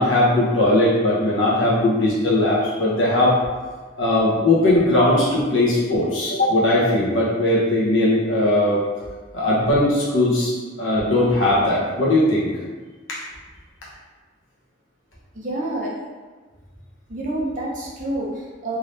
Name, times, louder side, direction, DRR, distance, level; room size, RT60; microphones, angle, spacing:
voice 1, 0.0-3.4 4.0-8.8 9.3-12.5 13.1-13.2, left 1 dB, 80° left, -6 dB, 1.3 m, -19 dB
voice 2, 15.3-16.0 17.1-18.8, right 1 dB, 40° right, -4 dB, 0.7 m, -28 dB
3.6 x 2.8 x 3.3 m, 1.4 s
head